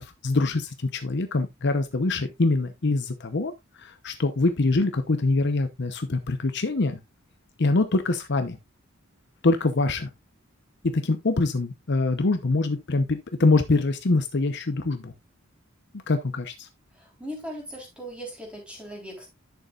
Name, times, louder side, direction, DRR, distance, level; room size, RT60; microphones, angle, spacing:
voice 1, 0.0-3.5 3.8-7.0 7.6-8.6 9.4-10.1 10.9-15.1 16.1-16.7, left 3 dB, 55° left, 0.8 m, -24 dB
voice 2, 16.9-19.3, equal, 5° right, 3.8 m, -39 dB
11.0 x 6.7 x 2.4 m
head